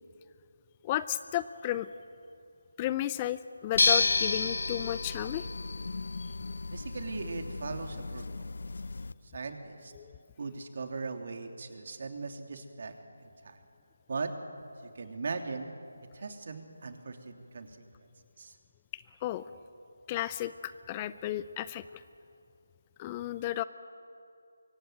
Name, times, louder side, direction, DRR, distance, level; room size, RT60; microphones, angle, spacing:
voice 1, 0.8-1.9 2.8-5.4 9.9-10.0 19.2-19.4 20.1-21.8 23.0-23.6, left 13 dB, 20° left, 15 dB, 0.6 m, -33 dB
sound 1, 3.7-9.1, left 3 dB, 60° left, 0.8 m, -31 dB
voice 2, 6.7-8.5 9.3-9.9 10.4-12.9 13.4-13.6 14.1-14.3 14.9-15.7 16.1-17.7 18.4-18.5, right 4 dB, 50° right, 5 dB, 3.0 m, -39 dB
24.0 x 23.5 x 9.2 m, 2.6 s
figure-of-eight pair, 160°, 0 cm